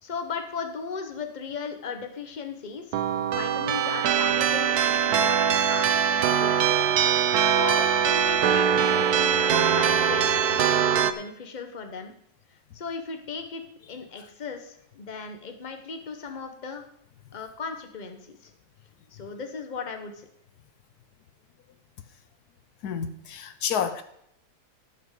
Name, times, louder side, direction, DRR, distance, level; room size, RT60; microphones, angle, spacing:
voice 1, 0.0-3.0 3.3-6.7 7.4-12.1 12.7-13.6 13.9-16.8 17.3-18.5 19.1-20.3, left 5 dB, 30° left, 1.2 m, -37 dB
sound 1, 2.9-11.1, right 8 dB, 80° right, 1.3 m, -22 dB
voice 2, 22.8-24.0, left 7 dB, 75° left, 1.3 m, -29 dB
13.0 x 6.0 x 6.7 m
omnidirectional pair, 1.7 m